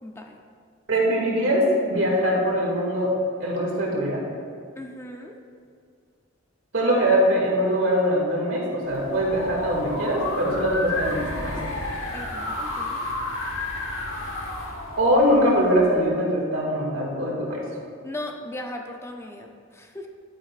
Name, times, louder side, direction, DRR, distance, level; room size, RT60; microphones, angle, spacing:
voice 1, 0.0-0.4 4.8-5.4 12.1-13.1 18.0-20.1, left 1 dB, 15° left, 2 dB, 0.5 m, -37 dB
voice 2, 0.9-3.1 3.4-4.2 6.7-11.7 15.0-17.6, equal, 75° right, -3 dB, 2.3 m, -22 dB
sound 1, 8.9-16.0, left 2 dB, 80° left, 1.4 m, -32 dB
11.5 x 9.0 x 2.5 m, 2.2 s
head